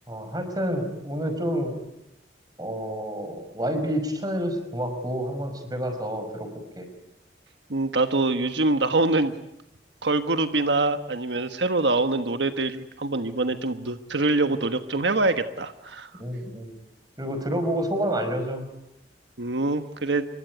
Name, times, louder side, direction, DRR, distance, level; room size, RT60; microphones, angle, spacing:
voice 1, 0.1-1.8 2.6-6.5 6.8-6.9 16.2-16.7 17.2-18.6, equal, 20° right, 7 dB, 5.6 m, -29 dB
voice 2, 7.7-9.3 10.0-16.1 19.4-20.3, right 2 dB, 85° right, 8 dB, 1.4 m, -24 dB
27.0 x 23.5 x 9.5 m, 0.86 s
head